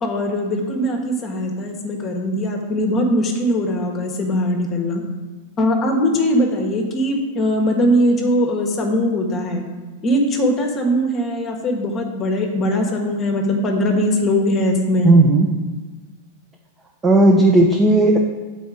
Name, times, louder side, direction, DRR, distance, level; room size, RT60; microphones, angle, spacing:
voice 1, 0.0-5.0 5.6-9.6 10.0-15.2, equal, 30° left, 2 dB, 1.1 m, -20 dB
voice 2, 15.0-15.5 17.0-18.2, right 2 dB, 20° right, 1 dB, 0.6 m, -13 dB
7.2 x 4.2 x 4.8 m, 1.3 s
hypercardioid pair, 115°, 0 cm